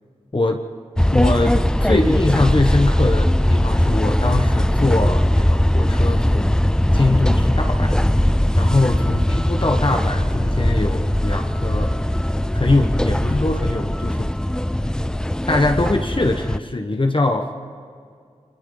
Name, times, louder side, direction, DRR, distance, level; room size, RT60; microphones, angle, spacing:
sound 1, 1.0-16.6, left 1 dB, 5° left, 0.4 m, -19 dB
voice 1, 1.1-6.6 6.9-8.0 8.6-9.2 9.5-12.0 12.5-14.3 15.5-17.5, left 2 dB, 40° left, 3 dB, 1.2 m, -22 dB
30.0 x 25.0 x 4.0 m, 2.2 s
wide cardioid pair, 65°, 13 cm